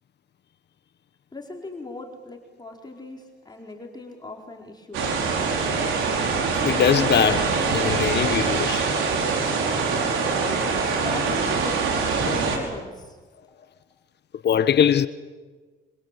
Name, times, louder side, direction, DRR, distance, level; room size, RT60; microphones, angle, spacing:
voice 1, 1.3-5.0 10.4-10.7 11.0-13.2, left 2 dB, 20° left, 4.6 m, -39 dB
sound 1, 4.9-12.6, right 4 dB, 90° right, 5.5 m, -24 dB
voice 2, 6.6-8.9 14.4-15.1, left 9 dB, 60° left, 1.2 m, -21 dB
26.5 x 26.5 x 8.5 m
cardioid pair, 90°, 20 cm